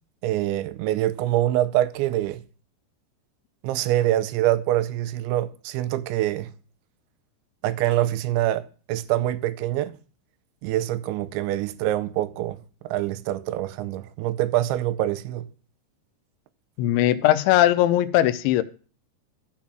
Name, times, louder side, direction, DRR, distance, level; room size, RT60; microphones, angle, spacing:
voice 1, 0.2-2.4 3.6-6.5 7.6-9.9 10.6-12.6 12.8-15.5, right 14 dB, 80° right, 3.0 m, -25 dB
voice 2, 16.8-18.6, left 13 dB, 80° left, 3.0 m, -19 dB
13.5 x 7.3 x 6.1 m
omnidirectional pair, 5.5 m